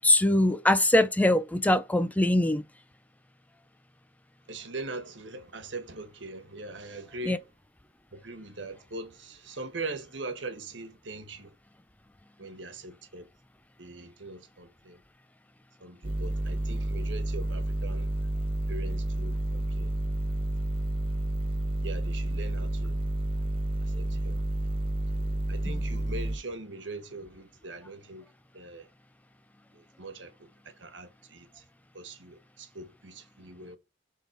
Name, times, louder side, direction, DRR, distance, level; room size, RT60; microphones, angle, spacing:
voice 1, 0.0-2.6 7.3-7.4, left 1 dB, 10° left, 0.5 m, -22 dB
voice 2, 4.5-7.5 8.1-11.5 12.4-13.3 13.8-15.0 15.8-18.1 18.7-19.9 21.8-23.0 23.8-24.4 25.1-28.3 28.5-28.9 29.7-31.6 31.9-33.8, right 2 dB, 80° right, 1.4 m, -41 dB
sound 1, 16.0-26.4, right 1 dB, 30° right, 0.9 m, -30 dB
6.8 x 3.7 x 4.9 m
head